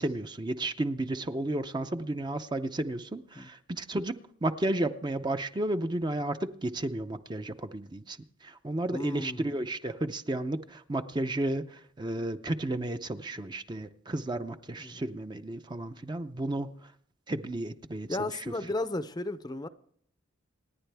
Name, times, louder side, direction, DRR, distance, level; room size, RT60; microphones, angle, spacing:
voice 1, 0.0-16.9 17.3-18.5, right 1 dB, 20° right, 0.6 m, -33 dB
voice 2, 8.9-9.5 14.8-15.0 18.1-19.7, left 2 dB, 20° left, 0.6 m, -34 dB
28.0 x 9.9 x 3.4 m
head